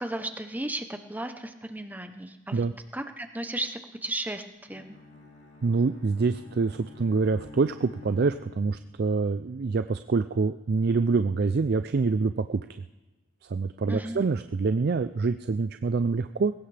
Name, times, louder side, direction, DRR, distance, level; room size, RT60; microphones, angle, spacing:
voice 1, 0.0-2.6 2.9-5.0 13.9-14.3, right 1 dB, 10° right, 7 dB, 0.8 m, -35 dB
Bowed string instrument, 4.7-9.1, left 3 dB, 60° left, 2.5 m, -49 dB
voice 2, 5.6-12.6 13.5-16.5, right 4 dB, 50° right, 10 dB, 0.4 m, -26 dB
21.0 x 17.0 x 3.4 m, 1.2 s
head